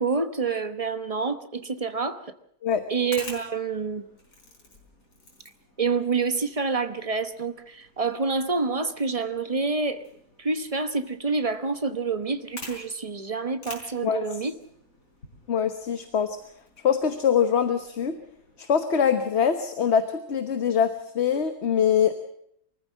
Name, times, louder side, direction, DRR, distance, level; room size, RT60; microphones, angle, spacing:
voice 1, 0.0-2.3 2.9-4.0 5.8-10.0 10.4-14.5, right 4 dB, 25° right, 10 dB, 1.1 m, -27 dB
sound 1, 2.9-18.6, left 2 dB, 85° left, 5.3 m, -49 dB
voice 2, 15.5-16.4 16.8-18.2 18.6-22.1, left 7 dB, 50° left, 9 dB, 1.4 m, -23 dB
24.0 x 14.5 x 7.4 m, 0.73 s
omnidirectional pair, 1.5 m